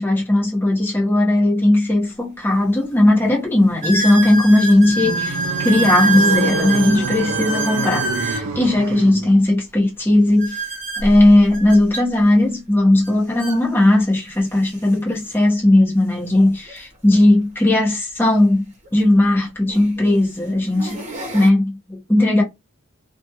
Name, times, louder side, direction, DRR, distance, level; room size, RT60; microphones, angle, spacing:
voice 1, 0.0-10.6 11.0-18.6 18.9-21.0 21.3-22.4, left 1 dB, 10° left, 0.9 m, -17 dB
sound 1, 2.1-2.2 2.8-2.9 3.8-8.5 10.4-12.0 13.0-13.1 13.4-13.6 14.4-14.5 16.7-16.8 18.9-19.0 19.7-20.0 20.5-21.5, right 3 dB, 35° right, 1.0 m, -25 dB
sound 2, 4.7-9.4, right 3 dB, 80° right, 0.4 m, -27 dB
2.5 x 2.3 x 2.8 m
head